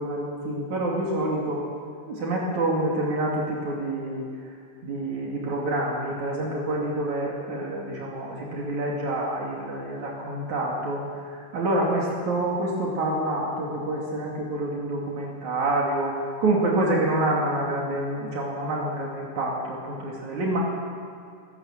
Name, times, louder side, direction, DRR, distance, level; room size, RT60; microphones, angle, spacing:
voice 1, 0.0-1.6 2.1-4.2 4.8-20.6, right 1 dB, 65° right, -3 dB, 3.9 m, -27 dB
26.0 x 14.5 x 7.4 m, 2.4 s
omnidirectional pair, 3.6 m